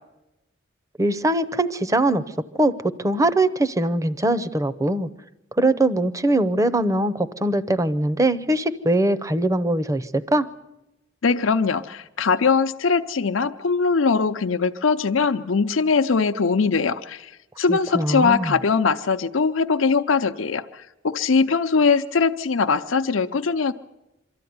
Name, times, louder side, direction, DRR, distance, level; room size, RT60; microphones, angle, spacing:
voice 1, 1.0-2.2 2.5-5.1 5.5-10.5 17.7-18.5, right 1 dB, 15° right, 15 dB, 0.7 m, -22 dB
voice 2, 11.2-17.3 17.6-23.7, left 5 dB, 85° left, 7 dB, 0.7 m, -21 dB
24.0 x 13.5 x 9.5 m, 0.95 s
head